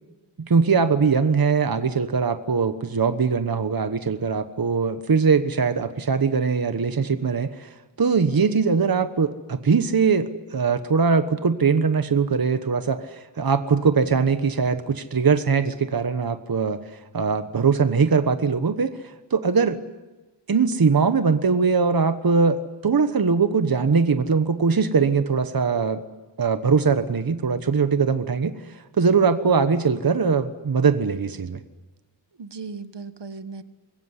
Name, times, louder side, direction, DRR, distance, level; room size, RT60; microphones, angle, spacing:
voice 1, 0.4-19.8 20.5-26.0 26.4-31.6, right 5 dB, 50° right, 10 dB, 1.3 m, -21 dB
voice 2, 8.2-8.9 32.4-33.6, right 4 dB, 65° right, 11 dB, 1.5 m, -37 dB
25.5 x 22.0 x 9.8 m, 1.2 s
wide cardioid pair, 105°, 45 cm